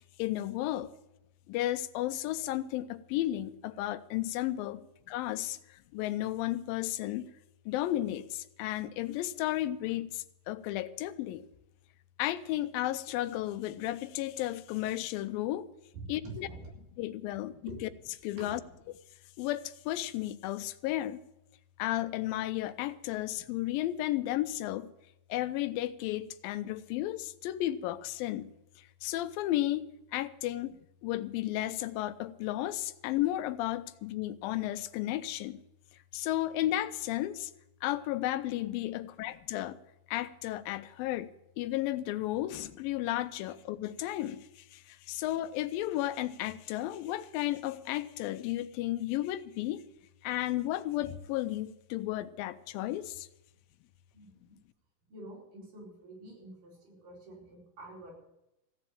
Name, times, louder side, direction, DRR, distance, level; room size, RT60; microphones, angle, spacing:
voice 1, 0.2-0.9 1.5-7.3 7.7-11.5 12.2-15.7 16.1-16.5 17.0-17.9 18.2-18.6 19.4-21.2 21.8-24.9 25.3-28.5 28.8-29.9 30.1-35.6 36.1-37.5 37.8-39.8 40.1-41.3 41.6-49.8 50.2-53.3, left 14 dB, 90° left, 2.4 m, -33 dB
voice 2, 15.9-16.6 18.4-18.5 54.1-54.6 55.1-58.1, right 2 dB, 70° right, 6.2 m, -47 dB
15.5 x 7.7 x 8.8 m
omnidirectional pair, 4.0 m